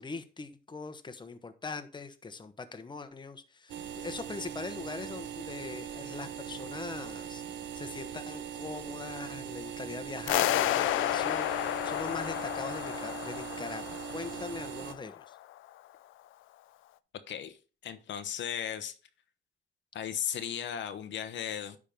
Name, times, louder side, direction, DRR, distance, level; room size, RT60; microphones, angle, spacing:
voice 1, 0.0-7.4 7.7-15.4, left 4 dB, 25° left, 1.0 m, -41 dB
sound 1, 3.7-14.9, right 9 dB, 75° right, 0.9 m, -41 dB
sound 2, 10.3-15.2, left 14 dB, 90° left, 0.5 m, -31 dB
voice 2, 17.3-17.6 17.8-19.0 19.9-21.8, left 9 dB, 65° left, 0.9 m, -36 dB
10.0 x 3.7 x 5.2 m
cardioid pair, 90°, 20 cm